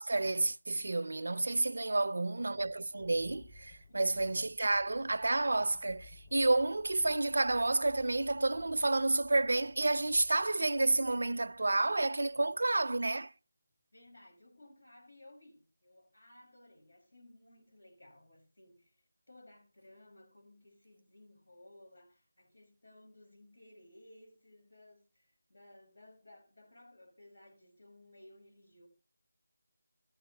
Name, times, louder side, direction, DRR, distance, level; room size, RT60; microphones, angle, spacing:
voice 1, 0.0-13.3, right 2 dB, 65° right, 0.4 m, -30 dB
voice 2, 1.8-2.2 3.9-4.3 13.9-18.9 19.3-28.9, left 1 dB, 65° left, 5.5 m, -58 dB
Thunder, 2.1-12.7, left 2 dB, 20° left, 5.4 m, -59 dB
13.5 x 9.4 x 2.8 m
figure-of-eight pair, 165°, 0 cm